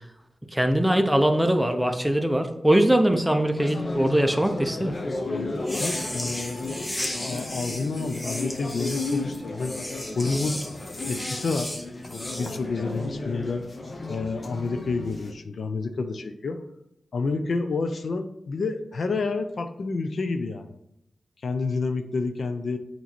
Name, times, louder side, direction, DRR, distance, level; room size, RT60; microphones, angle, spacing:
voice 1, 0.5-5.0, right 1 dB, 5° right, 6 dB, 0.7 m, -21 dB
sound 1, 3.6-15.3, left 2 dB, 45° left, 0.8 m, -34 dB
sound 2, 5.6-12.6, left 1 dB, 20° left, 1.0 m, -34 dB
voice 2, 5.8-6.6 7.2-9.8 10.2-10.6 11.1-11.7 12.1-13.6 14.1-16.6 17.1-20.7 21.4-22.8, left 3 dB, 70° left, 8 dB, 0.5 m, -29 dB
8.2 x 3.0 x 4.3 m, 0.83 s
cardioid pair, 60°, 0 cm